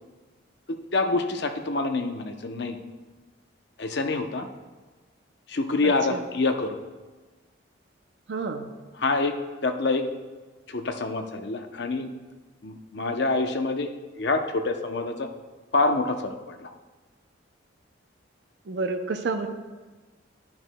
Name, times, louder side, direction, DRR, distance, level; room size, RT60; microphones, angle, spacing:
voice 1, 0.7-2.8 3.8-4.5 5.5-6.8 9.0-9.4 9.6-10.0 10.7-12.1 12.6-13.9 14.2-15.3 15.7-16.7, left 3 dB, 55° left, 6 dB, 0.7 m, -26 dB
voice 2, 5.8-6.2 8.3-8.7 18.7-19.5, right 3 dB, 60° right, 6 dB, 0.5 m, -29 dB
11.0 x 10.5 x 2.2 m, 1.3 s
head